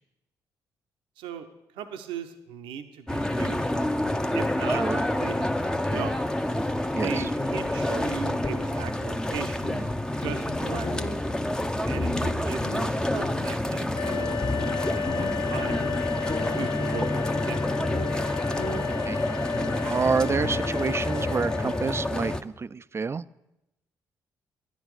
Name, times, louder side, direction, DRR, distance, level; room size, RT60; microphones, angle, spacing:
voice 1, 1.2-1.5 1.7-3.9 4.3-4.8 5.1-6.2 7.0-9.9 10.2-11.0 11.9-16.0 16.5-17.7, right 8 dB, 80° right, 7 dB, 0.7 m, -38 dB
sound 1, 3.1-22.4, left 1 dB, 10° left, 0.7 m, -28 dB
voice 2, 6.9-7.3 11.8-12.0 19.1-19.2 19.8-23.2, right 5 dB, 30° right, 17 dB, 0.4 m, -28 dB
sound 2, 7.4-8.6 9.3-9.4 9.6-9.9 10.2-11.1 12.0-13.0 13.2-13.5 14.4-16.0 16.3-16.5 17.9-18.1 18.6-18.8 19.5-19.9 20.4-20.7 21.0-21.1 22.3-22.4, left 2 dB, 45° left, 1.5 m, -34 dB
sound 3, 13.9-22.4, left 7 dB, 65° left, 0.5 m, -33 dB
10.5 x 10.0 x 4.8 m, 0.90 s
hypercardioid pair, 45°, 9 cm